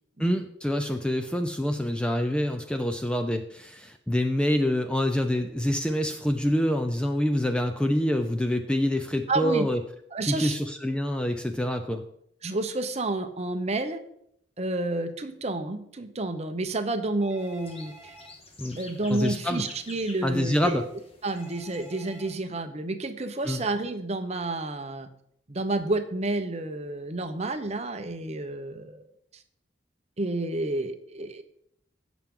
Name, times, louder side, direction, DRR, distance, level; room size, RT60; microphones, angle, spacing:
voice 1, 0.2-9.8 10.2-12.0 18.6-18.8 19.1-19.6 20.2-20.8 23.4-23.6, left 1 dB, 5° left, 6 dB, 0.5 m, -26 dB
voice 2, 9.3-9.7 10.1-10.6 12.4-14.0 14.6-18.1 18.8-20.8 21.2-25.1 25.5-29.1 30.2-31.4, right 2 dB, 35° right, 8 dB, 0.8 m, -30 dB
Telephone, 17.2-18.3 21.3-22.3, right 1 dB, 15° right, 1.4 m, -49 dB
sound 1, 17.4-22.3, left 2 dB, 30° left, 1.3 m, -49 dB
15.5 x 6.0 x 3.8 m, 0.72 s
head